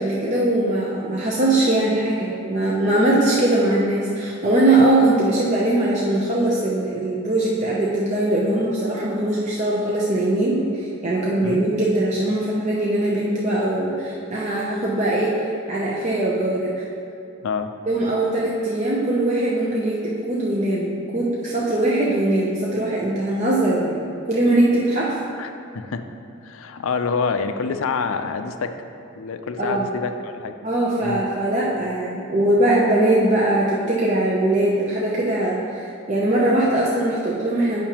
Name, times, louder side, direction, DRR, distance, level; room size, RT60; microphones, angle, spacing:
voice 1, 0.0-15.3 15.7-16.8 17.9-25.1 29.6-29.8 30.6-37.8, right 1 dB, 35° right, -5 dB, 0.6 m, -21 dB
voice 2, 25.4-26.0 26.4-28.7 29.2-30.5 31.0-31.2, left 5 dB, 75° left, 8 dB, 0.4 m, -27 dB
8.7 x 5.8 x 2.9 m, 2.6 s
head